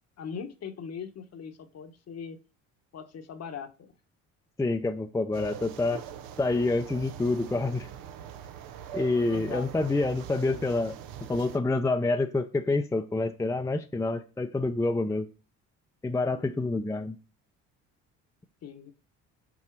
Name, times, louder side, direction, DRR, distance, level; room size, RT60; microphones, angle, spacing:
voice 1, 0.2-2.4 2.9-3.9 9.3-9.9 18.6-18.9, left 6 dB, 45° left, 8 dB, 1.1 m, -40 dB
voice 2, 4.6-6.0 6.4-7.9 8.9-10.9 11.3-15.3 16.0-17.2, left 2 dB, 10° left, 6 dB, 0.6 m, -27 dB
sound 1, 5.3-11.6, right 9 dB, 70° right, 0.8 m, -42 dB
6.1 x 3.9 x 4.5 m, 0.34 s
supercardioid pair, 70°, 36 cm